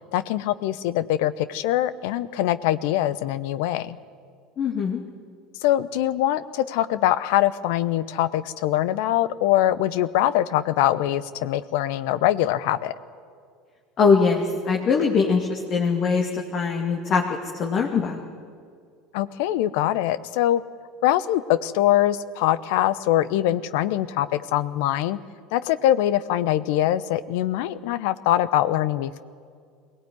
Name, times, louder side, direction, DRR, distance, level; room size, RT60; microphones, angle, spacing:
voice 1, 0.1-4.0 5.6-12.9 19.1-20.6 21.0-25.2 25.5-29.2, left 13 dB, 65° left, 16 dB, 0.8 m, -23 dB
voice 2, 4.6-5.0 14.0-17.2 17.6-18.2, left 5 dB, 45° left, 1 dB, 2.4 m, -22 dB
22.5 x 18.0 x 9.7 m, 2.2 s
hypercardioid pair, 75°, 0 cm